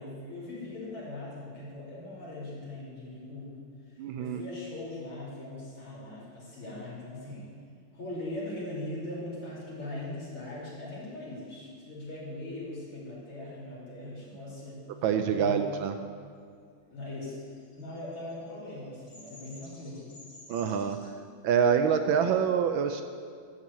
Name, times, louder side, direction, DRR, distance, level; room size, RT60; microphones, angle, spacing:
voice 1, 0.0-3.6 4.2-7.5 7.9-14.8 15.3-15.6 16.9-17.4 17.7-20.1, left 1 dB, 75° left, -8 dB, 4.2 m, -40 dB
voice 2, 4.0-4.4 15.0-15.9 20.5-21.0 21.4-23.0, right 7 dB, 75° right, 7 dB, 1.2 m, -26 dB
Bird vocalization bird call bird song, 17.4-21.1, left 1 dB, 45° left, 2.8 m, -52 dB
12.5 x 4.6 x 8.5 m, 2.2 s
omnidirectional pair, 2.4 m